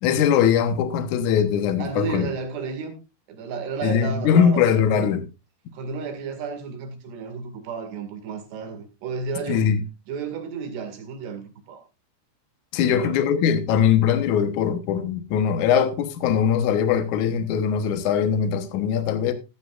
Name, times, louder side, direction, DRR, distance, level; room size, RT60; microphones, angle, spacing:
voice 1, 0.0-2.3 3.8-5.2 9.5-9.8 12.7-19.3, left 8 dB, 75° left, 1.8 m, -21 dB
voice 2, 1.8-3.0 3.3-5.1 5.7-9.7 10.1-11.8 12.8-13.2, right 5 dB, 70° right, 4.2 m, -32 dB
14.5 x 12.5 x 2.5 m
omnidirectional pair, 5.1 m